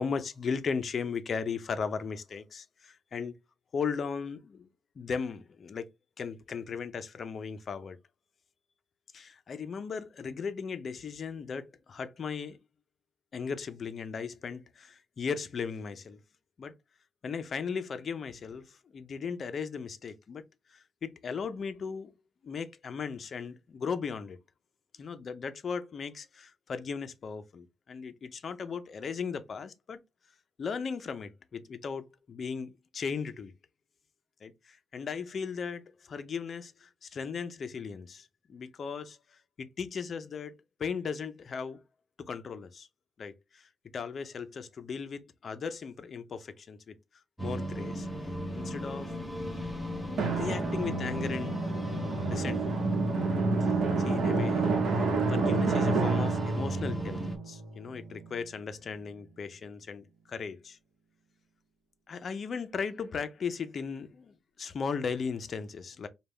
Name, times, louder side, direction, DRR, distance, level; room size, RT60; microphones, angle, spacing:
voice 1, 0.0-3.4 3.7-4.7 5.0-5.9 6.2-8.0 9.1-12.6 13.3-16.2 16.6-16.7 17.2-20.4 20.7-22.1 22.4-24.4 25.0-30.0 30.6-33.5 34.4-39.2 39.6-40.5 40.8-41.8 42.3-42.9 43.2-43.6 43.9-46.9 47.4-48.1 48.5-49.1 50.3-51.6 52.2-52.8 53.6-54.7 55.3-60.8 62.1-66.1, left 5 dB, 40° left, 0.5 m, -37 dB
sound 1, 47.4-57.4, right 1 dB, ahead, 0.8 m, -34 dB
Drum, 50.2-58.5, right 4 dB, 60° right, 0.9 m, -30 dB
5.2 x 2.2 x 3.3 m
cardioid pair, 170°, 0 cm